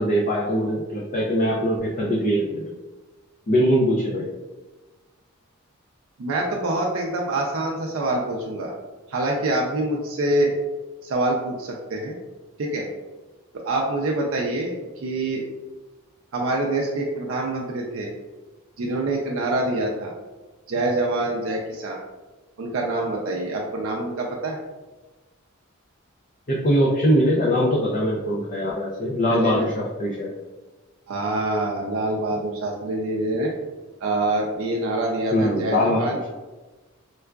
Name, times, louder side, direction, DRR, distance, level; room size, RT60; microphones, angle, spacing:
voice 1, 0.0-2.7 3.5-4.3 26.5-30.3 35.3-36.2, equal, 40° left, -4 dB, 0.5 m, -22 dB
voice 2, 6.2-8.8 9.1-10.5 11.0-12.2 12.6-12.9 13.5-15.5 16.3-18.1 18.8-20.1 20.7-22.0 22.6-24.6 29.3-29.6 31.1-33.5 34.0-36.2, right 2 dB, 65° right, -1 dB, 0.4 m, -25 dB
4.5 x 2.3 x 2.2 m, 1.2 s
head